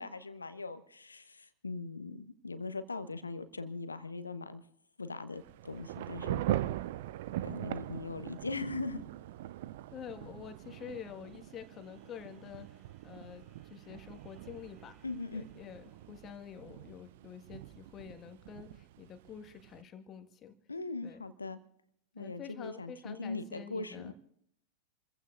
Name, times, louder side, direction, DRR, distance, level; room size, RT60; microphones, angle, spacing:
voice 1, 0.0-4.6 5.0-6.4 7.4-9.0 15.0-15.5 20.7-21.6 22.1-24.1, left 3 dB, 80° left, 12 dB, 1.2 m, -40 dB
Thunder / Rain, 5.3-19.8, right 13 dB, 55° right, 0.5 m, -41 dB
sound 1, 9.7-17.8, right 6 dB, 35° right, 4.4 m, -66 dB
voice 2, 9.9-13.4 13.7-15.0 15.3-20.5 21.0-21.2 22.1-24.1, left 8 dB, 30° left, 7 dB, 1.8 m, -48 dB
29.0 x 15.5 x 2.6 m, 0.69 s
figure-of-eight pair, 90°, 0 cm